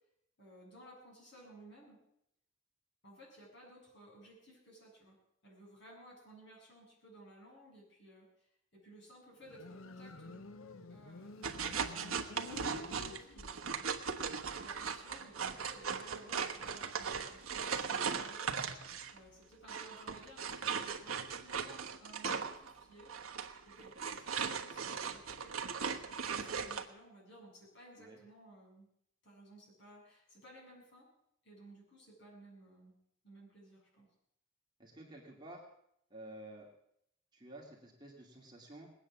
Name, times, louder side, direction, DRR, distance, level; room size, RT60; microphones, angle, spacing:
voice 1, 0.4-2.0 3.0-5.2 5.4-10.6 10.9-13.8 14.5-18.5 19.1-23.1 23.6-28.9 29.2-31.1 31.4-32.9 33.2-34.1, right 1 dB, 55° left, -3 dB, 7.9 m, -57 dB
Motorcycle, 9.4-13.8, left 3 dB, 75° left, 0.8 m, -51 dB
sound 1, 11.4-19.2 19.6-26.9, right 6 dB, 85° right, 1.3 m, -38 dB
voice 2, 34.8-35.6 36.1-36.7 37.3-38.9, right 1 dB, 20° right, -2 dB, 2.6 m, -51 dB
20.0 x 9.1 x 7.3 m, 0.74 s
head